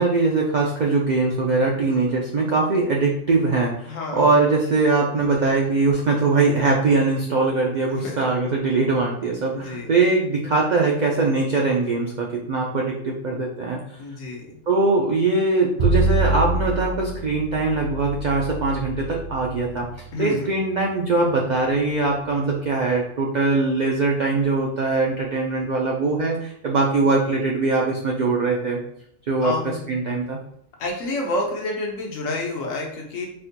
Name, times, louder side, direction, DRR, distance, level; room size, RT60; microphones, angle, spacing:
voice 1, 0.0-13.8 14.7-19.9 20.2-28.8 29.3-29.5 29.9-30.4, right 3 dB, 80° right, -1 dB, 0.4 m, -21 dB
voice 2, 3.9-4.3 7.9-8.3 9.5-9.9 14.0-14.5 20.1-20.5 29.4-29.9 30.8-33.3, left 2 dB, 90° left, 0 dB, 1.2 m, -29 dB
Bowed string instrument, 15.8-21.9, right 2 dB, 55° right, 0.8 m, -27 dB
4.2 x 2.2 x 2.8 m, 0.68 s
omnidirectional pair, 1.3 m